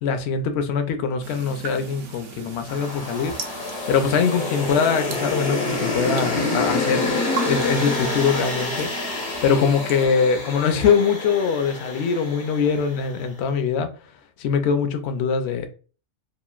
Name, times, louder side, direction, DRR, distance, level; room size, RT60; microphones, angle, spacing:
voice 1, 0.0-3.3 3.9-7.2 7.4-13.9 14.4-15.7, left 6 dB, 65° left, 0.7 m, -22 dB
sound 1, 1.2-10.1, right 6 dB, 60° right, 0.7 m, -38 dB
sound 2, 2.7-13.0, left 2 dB, 85° left, 1.4 m, -27 dB
3.0 x 2.5 x 2.3 m
omnidirectional pair, 1.4 m